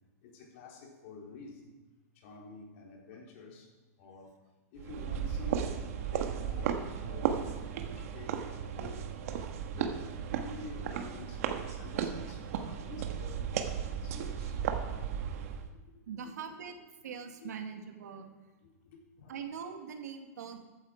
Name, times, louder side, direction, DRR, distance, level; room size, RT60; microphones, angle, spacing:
voice 1, 0.2-1.8 2.1-4.4 4.7-9.1 9.7-14.7 15.9-16.4 17.4-17.5 18.6-19.4 20.5-20.6, left 4 dB, 50° left, 0 dB, 3.3 m, -50 dB
sound 1, 4.8-15.7, right 8 dB, 60° right, 1.4 m, -35 dB
voice 2, 16.1-16.8 17.0-18.3 19.3-20.7, right 7 dB, 80° right, 5 dB, 2.0 m, -42 dB
14.5 x 9.3 x 4.8 m, 1.2 s
hypercardioid pair, 150°, 9 cm